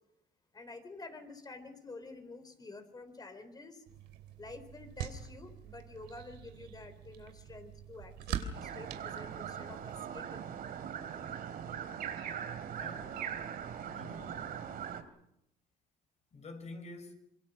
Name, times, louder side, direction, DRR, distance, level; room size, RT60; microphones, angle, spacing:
voice 1, 0.5-3.8 4.4-10.5, left 3 dB, 25° left, 3.9 m, -49 dB
sound 1, 3.9-10.0, right 9 dB, 80° right, 2.9 m, -44 dB
sound 2, 8.5-15.0, right 8 dB, 60° right, 2.9 m, -41 dB
voice 2, 12.7-13.3 13.9-14.6 16.3-17.1, left 2 dB, 40° left, 5.9 m, -48 dB
26.0 x 23.0 x 6.5 m
cardioid pair, 110°, 17 cm